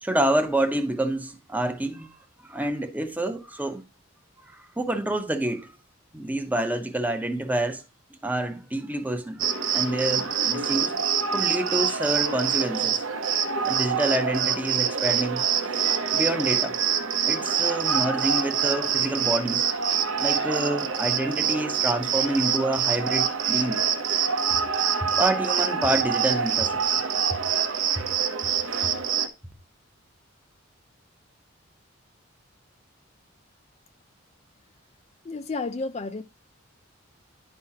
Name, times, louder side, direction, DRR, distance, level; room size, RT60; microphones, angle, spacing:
voice 1, 0.0-2.1 2.4-3.8 4.4-5.7 6.1-7.8 8.2-9.4 9.7-11.0 11.3-13.0 13.3-15.4 16.1-16.8 17.3-19.7 20.2-23.8 25.0-26.8, right 1 dB, 10° right, 0.7 m, -27 dB
Cricket, 9.4-29.3, right 7 dB, 75° right, 0.9 m, -25 dB
voice 2, 35.2-36.2, left 3 dB, 30° left, 0.4 m, -31 dB
11.0 x 4.8 x 2.8 m
head